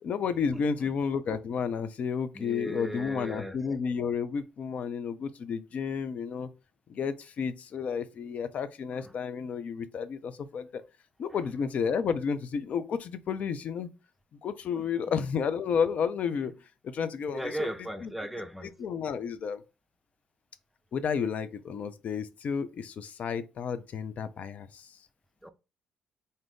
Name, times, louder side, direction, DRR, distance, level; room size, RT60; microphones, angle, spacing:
voice 1, 0.0-6.5 6.9-10.8 11.2-13.9 14.4-16.5 16.8-17.7 18.0-18.1 18.6-19.6 20.9-25.0, left 6 dB, 55° left, 0.4 m, -31 dB
voice 2, 0.5-0.9 2.3-3.6 9.0-9.1 14.7-15.1 17.3-18.8 25.4-25.5, right 1 dB, 5° right, 0.6 m, -37 dB
2.7 x 2.5 x 3.5 m
hypercardioid pair, 50°, 3 cm